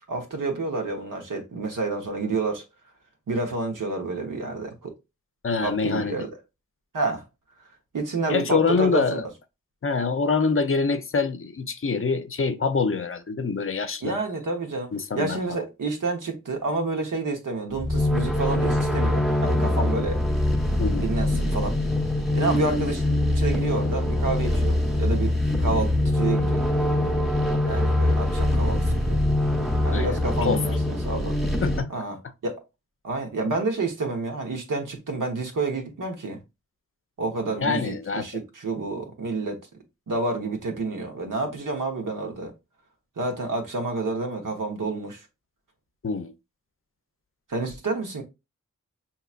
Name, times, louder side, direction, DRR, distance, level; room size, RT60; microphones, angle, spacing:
voice 1, 0.1-2.6 3.3-4.9 5.6-6.3 6.9-7.2 7.9-9.2 14.0-20.2 21.0-21.8 22.3-23.0 23.4-26.7 27.7-29.2 29.8-31.4 31.9-32.6 33.0-36.4 37.2-39.6 40.1-42.5 43.2-45.2 47.5-48.2, right 3 dB, 80° right, 1.1 m, -29 dB
voice 2, 5.4-6.3 8.3-9.3 9.8-14.2 14.9-15.6 20.8-21.1 29.9-30.6 31.6-31.9 37.6-38.3 46.0-46.3, left 4 dB, 45° left, 0.6 m, -25 dB
sound 1, 17.8-31.8, left 1 dB, ahead, 0.9 m, -23 dB
5.6 x 2.9 x 2.4 m
cardioid pair, 55°, 31 cm